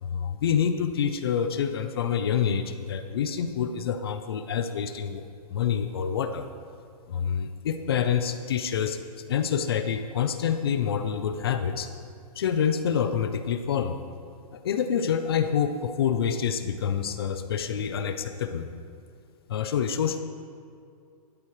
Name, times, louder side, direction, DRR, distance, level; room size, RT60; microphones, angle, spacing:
voice 1, 0.0-6.5 7.1-9.0 9.3-11.9 12.4-14.0 14.5-18.6 19.5-20.2, left 7 dB, 40° left, 9 dB, 0.5 m, -27 dB
12.0 x 11.0 x 3.1 m, 2.4 s
hypercardioid pair, 175°, 20 cm